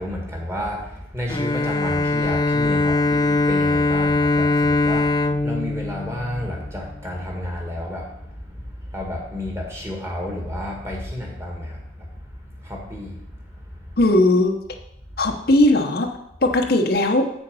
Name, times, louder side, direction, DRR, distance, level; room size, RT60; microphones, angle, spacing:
voice 1, 0.0-13.2 13.8-14.1, left 1 dB, 15° right, -1 dB, 1.9 m, -31 dB
Bowed string instrument, 1.3-7.0, left 3 dB, 20° left, 0.4 m, -21 dB
voice 2, 14.0-14.6 15.2-16.1 16.4-17.3, left 1 dB, 55° left, 3 dB, 0.9 m, -18 dB
7.9 x 6.8 x 5.5 m, 0.80 s
head